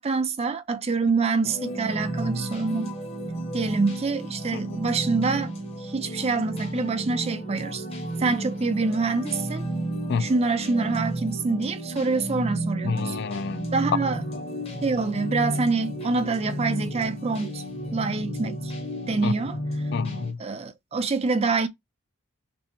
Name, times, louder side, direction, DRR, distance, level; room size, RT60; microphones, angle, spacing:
voice 1, 0.0-2.9 3.5-5.5 5.8-7.8 8.2-9.7 10.2-13.1 13.7-14.2 14.8-17.6 17.9-18.7 19.1-19.6 20.4-21.7, right 4 dB, 30° right, 0.4 m, -26 dB
sound 1, 1.4-20.3, right 1 dB, 30° left, 1.1 m, -32 dB
voice 2, 12.8-13.7 14.3-14.4 19.2-19.3 19.9-20.4, left 5 dB, 55° left, 0.3 m, -29 dB
6.1 x 2.1 x 2.9 m
head